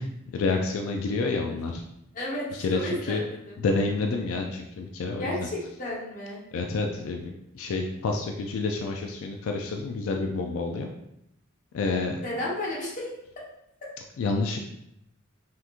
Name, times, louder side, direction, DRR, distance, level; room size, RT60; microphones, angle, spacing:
voice 1, 0.3-1.8 2.6-2.8 3.1-3.2 3.6-5.5 6.5-7.3 7.5-10.9 11.7-12.2 14.2-14.6, left 3 dB, 80° left, 3 dB, 0.3 m, -28 dB
voice 2, 2.1-3.6 5.2-6.4 12.2-13.1, left 1 dB, 40° left, -5 dB, 0.9 m, -33 dB
3.5 x 2.9 x 2.4 m, 0.81 s
head